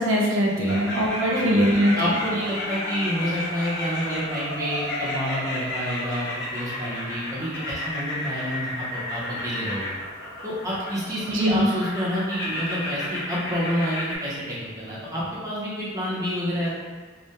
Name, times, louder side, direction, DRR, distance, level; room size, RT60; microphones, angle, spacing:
voice 1, 0.0-1.9 11.3-11.7, equal, 70° right, -3 dB, 0.4 m, -21 dB
sound 1, 0.7-14.2, left 1 dB, 60° left, 0.5 m, -32 dB
voice 2, 2.0-9.9 10.4-16.7, equal, 15° right, -8 dB, 0.6 m, -29 dB
2.2 x 2.1 x 2.7 m, 1.3 s
head